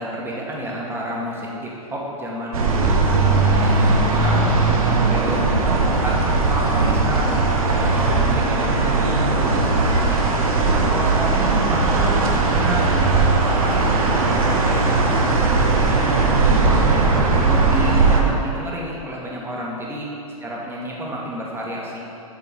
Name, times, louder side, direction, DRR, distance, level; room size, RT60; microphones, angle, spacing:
voice 1, 0.0-7.4 7.7-10.2 10.7-13.3 13.6-17.1 17.4-20.1 20.4-22.0, right 1 dB, 10° right, -3 dB, 1.1 m, -30 dB
sound 1, 2.5-18.2, right 3 dB, 70° right, 0.8 m, -18 dB
7.0 x 4.4 x 3.5 m, 2.7 s
hypercardioid pair, 105°, 19 cm